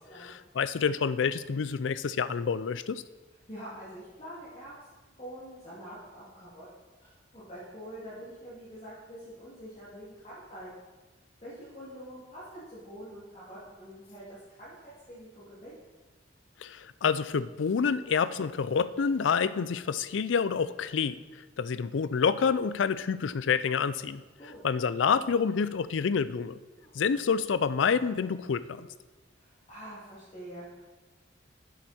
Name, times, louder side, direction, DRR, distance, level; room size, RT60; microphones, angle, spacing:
voice 1, 0.2-3.0 16.6-21.2 21.6-24.2 24.6-26.6 26.9-28.9, left 6 dB, 85° left, 15 dB, 0.4 m, -28 dB
voice 2, 3.5-6.7 7.0-10.7 11.4-15.8 24.4-24.6 26.8-26.9 29.4-30.9, equal, 35° left, -10 dB, 2.6 m, -46 dB
11.0 x 7.9 x 4.3 m, 1.2 s
head